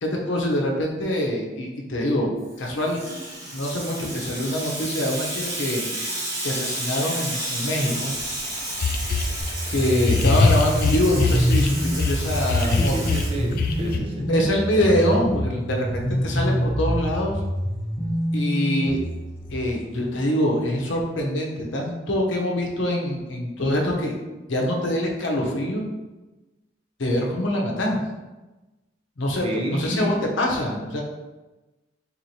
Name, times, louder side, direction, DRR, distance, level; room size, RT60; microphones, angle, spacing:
voice 1, 0.0-2.3 2.6-3.0 3.5-5.8 6.4-8.1 9.7-13.1 14.3-17.4 18.3-19.0 19.5-24.1 24.5-25.8 27.0-28.0 29.2-31.0, left 1 dB, 75° left, -1 dB, 0.7 m, -24 dB
Water tap faucet / Sink (filling or washing), 2.5-13.9, right 1 dB, 80° right, 1.5 m, -32 dB
sound 1, 8.2-8.3 8.8-9.4 10.0-12.2 12.5-14.0, left 4 dB, 50° left, 0.3 m, -21 dB
sound 2, 9.4-19.5, equal, 25° left, 0.7 m, -27 dB
voice 2, 12.6-14.3 29.4-30.1, equal, 30° right, -1 dB, 0.5 m, -29 dB
4.1 x 3.0 x 2.7 m, 1.1 s
head